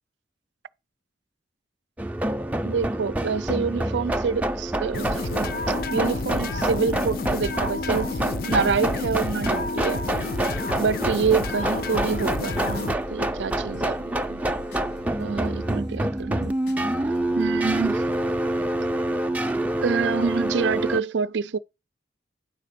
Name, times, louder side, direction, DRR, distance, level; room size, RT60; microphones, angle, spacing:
sound 1, 2.0-21.0, right 1 dB, 10° right, 0.4 m, -27 dB
voice 1, 2.6-5.5 5.9-10.0 10.8-14.4 15.2-16.5 17.4-18.1 19.8-21.6, right 5 dB, 85° right, 0.4 m, -27 dB
sound 2, 4.9-12.9, left 3 dB, 55° left, 0.6 m, -30 dB
sound 3, 12.1-18.3, left 1 dB, 80° left, 1.4 m, -46 dB
10.0 x 4.1 x 6.7 m
head